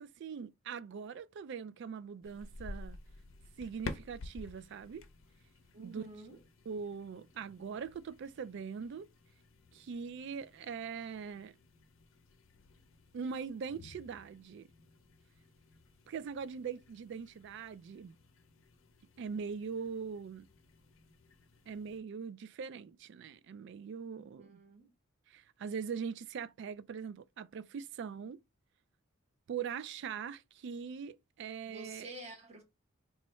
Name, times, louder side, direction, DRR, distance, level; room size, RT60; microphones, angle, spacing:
voice 1, 0.0-3.0 3.6-5.0 5.8-6.0 6.7-9.1 9.7-11.5 13.1-14.7 16.1-18.1 19.2-20.5 21.7-24.5 25.3-28.4 29.5-32.1, right 6 dB, 60° right, 0.3 m, -42 dB
sound 1, 2.2-22.0, left 3 dB, 70° left, 0.5 m, -52 dB
voice 2, 5.7-6.4 24.2-24.9 31.7-32.6, right 2 dB, 30° right, 1.1 m, -49 dB
3.0 x 2.3 x 4.1 m
head